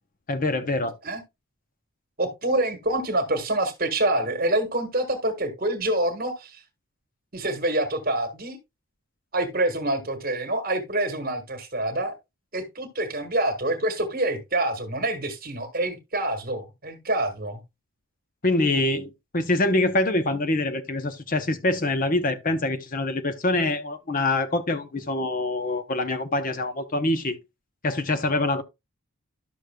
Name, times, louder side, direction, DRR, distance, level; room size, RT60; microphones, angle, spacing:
voice 1, 0.3-1.0 18.4-27.4 27.8-28.6, left 2 dB, 40° left, 0.7 m, -25 dB
voice 2, 2.2-6.6 7.3-8.6 9.3-12.2 12.5-17.6, right 1 dB, 40° right, 1.5 m, -26 dB
11.5 x 6.5 x 2.2 m
head